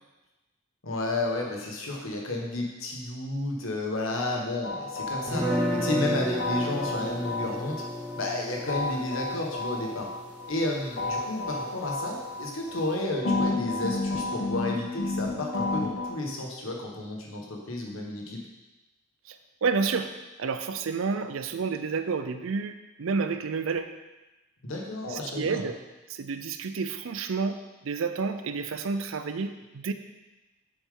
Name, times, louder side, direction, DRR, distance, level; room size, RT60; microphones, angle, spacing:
voice 1, 0.8-7.8 8.2-10.1 10.5-18.4 24.6-25.6, left 2 dB, 80° left, 0 dB, 1.5 m, -32 dB
sound 1, 4.6-6.1 6.4-8.3 8.7-10.6 11.0-12.9 13.2-16.1, left 2 dB, 50° left, 1.2 m, -31 dB
sound 2, 5.3-11.2, equal, 20° right, 1.6 m, -32 dB
voice 2, 19.3-20.1 20.4-23.9 25.1-25.8 26.1-29.9, right 5 dB, 75° right, 9 dB, 0.5 m, -30 dB
7.2 x 7.1 x 3.8 m, 1.1 s
head